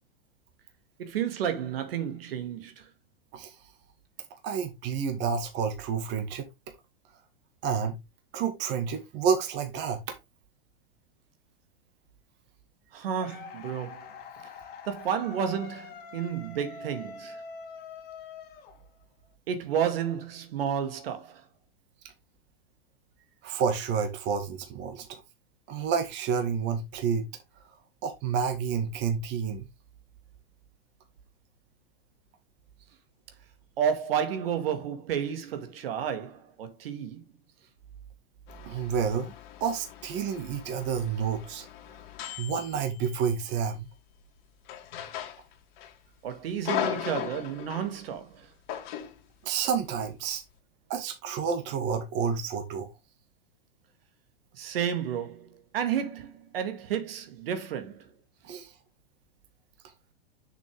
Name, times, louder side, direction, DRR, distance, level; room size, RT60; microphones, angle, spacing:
voice 1, 1.0-2.9 12.9-14.1 14.9-17.4 19.5-21.4 33.8-37.2 46.2-48.5 54.5-58.1, right 8 dB, 75° right, 2.1 m, -31 dB
voice 2, 4.4-6.4 7.6-8.0 8.3-10.1 23.4-25.2 25.7-27.3 28.0-29.7 38.7-39.3 39.6-41.7 42.4-43.9 49.4-50.4 50.9-52.9 58.4-58.7, right 6 dB, 35° right, 1.9 m, -29 dB
sound 1, 13.1-19.2, left 5 dB, 30° left, 2.2 m, -44 dB
sound 2, 38.5-43.5 44.7-45.9 46.2-48.0 48.7-49.2, left 10 dB, 55° left, 2.3 m, -38 dB
6.8 x 6.1 x 3.6 m
hypercardioid pair, 135°, 30 cm